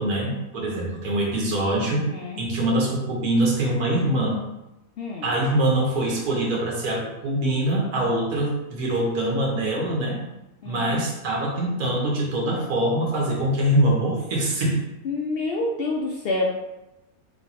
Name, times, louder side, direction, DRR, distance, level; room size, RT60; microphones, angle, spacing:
voice 1, 0.0-2.1 2.4-4.4 5.2-10.2 10.6-14.8, right 1 dB, 85° right, -2 dB, 1.5 m, -24 dB
voice 2, 2.0-2.4 5.0-5.3 10.6-11.0 15.0-16.4, left 2 dB, 70° left, -1 dB, 0.5 m, -28 dB
3.3 x 3.1 x 4.0 m, 0.94 s
omnidirectional pair, 1.5 m